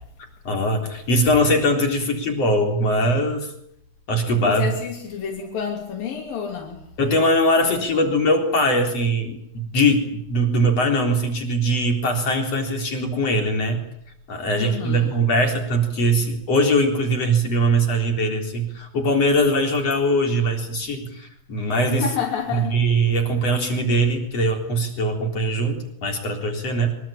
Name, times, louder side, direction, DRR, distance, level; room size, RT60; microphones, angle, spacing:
voice 1, 0.4-3.5 4.1-4.7 7.0-13.8 14.3-22.0 22.5-26.9, right 1 dB, 45° left, 4 dB, 4.8 m, -21 dB
voice 2, 4.4-6.8 7.6-8.1 14.6-15.1 22.0-22.8, left 7 dB, 80° left, 1 dB, 4.8 m, -29 dB
25.0 x 23.0 x 8.8 m, 0.74 s
omnidirectional pair, 3.9 m